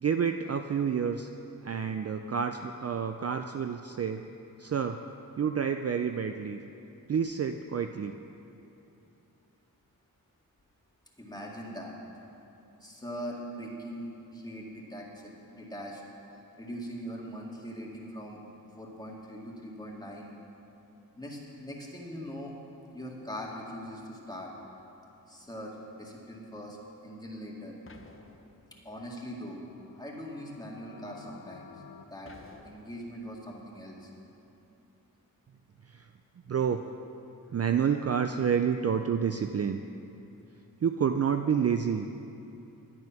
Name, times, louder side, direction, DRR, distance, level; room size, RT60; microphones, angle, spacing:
voice 1, 0.0-1.3 1.6-4.2 4.6-5.0 5.4-6.6 7.1-8.2 35.8-36.1 36.5-36.9 37.5-39.8 40.8-42.1, right 7 dB, 45° right, 7 dB, 0.4 m, -29 dB
voice 2, 11.2-11.9 12.8-16.0 16.6-18.4 18.8-20.3 21.2-22.5 22.9-24.5 25.3-26.8 27.0-27.8 28.8-29.6 30.0-31.7 32.1-32.3 32.6-34.1, equal, 10° left, -3 dB, 2.1 m, -41 dB
sound 1, 27.9-29.1 32.3-33.2, left 3 dB, 35° left, 0.8 m, -53 dB
sound 2, 29.5-32.0, left 7 dB, 80° left, 0.6 m, -52 dB
11.0 x 9.4 x 5.9 m, 2.8 s
wide cardioid pair, 75°, 37 cm